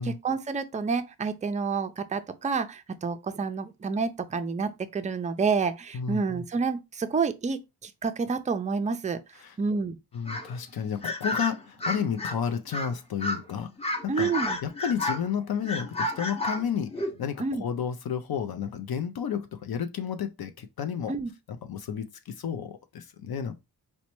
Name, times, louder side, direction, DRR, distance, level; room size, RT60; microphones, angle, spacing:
voice 1, 0.0-9.2 9.6-10.0 14.1-14.6 17.4-17.6 21.1-21.3, right 5 dB, 20° right, 0.3 m, -29 dB
voice 2, 10.1-14.3 14.6-21.1 21.5-23.5, left 7 dB, 70° left, 0.5 m, -32 dB
sound 1, 10.3-10.5 11.0-12.4 12.7-12.9 13.2-13.4 13.8-15.3 15.6-17.2, left 1 dB, 15° left, 0.6 m, -31 dB
4.0 x 2.2 x 3.0 m
wide cardioid pair, 100°, 39 cm